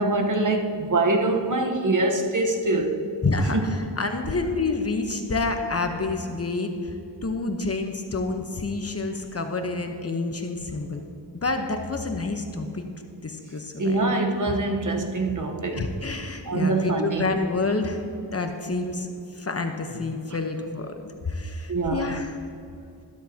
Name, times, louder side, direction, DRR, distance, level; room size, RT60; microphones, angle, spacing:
voice 1, 0.0-3.0 3.5-3.6 13.8-15.8 16.5-17.2 21.7-22.2, right 2 dB, 45° right, 1.1 m, -24 dB
voice 2, 3.2-6.9 7.2-11.0 11.4-12.8 13.2-14.1 15.7-22.4, left 3 dB, 35° left, 0.9 m, -28 dB
13.0 x 12.0 x 2.8 m
wide cardioid pair, 85°, 42 cm